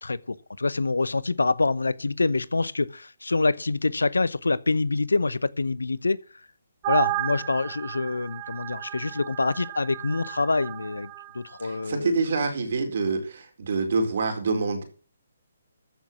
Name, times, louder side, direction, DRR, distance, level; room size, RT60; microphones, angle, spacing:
voice 1, 0.0-6.2 6.9-12.2, left 3 dB, 85° left, 0.7 m, -26 dB
sound 1, 6.8-11.3, right 19 dB, 30° right, 1.8 m, -33 dB
voice 2, 11.6-14.8, right 4 dB, 60° right, 4.4 m, -26 dB
14.5 x 6.4 x 7.1 m
hypercardioid pair, 145°, 0 cm